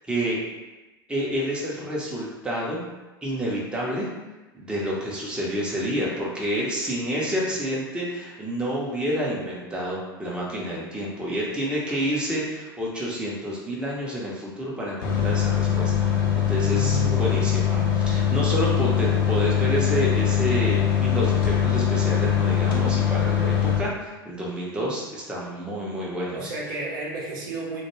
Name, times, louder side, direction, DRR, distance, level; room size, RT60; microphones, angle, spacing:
voice 1, 0.1-0.4 1.1-2.8 3.2-4.1 4.5-16.1 16.5-26.5, equal, 10° right, -5 dB, 0.6 m, -29 dB
sound 1, 15.0-23.8, left 9 dB, 60° left, 0.6 m, -22 dB
voice 2, 16.6-17.4 26.3-27.8, right 2 dB, 60° right, -4 dB, 0.7 m, -32 dB
2.2 x 2.1 x 3.0 m, 1.1 s
figure-of-eight pair, 80°, 12 cm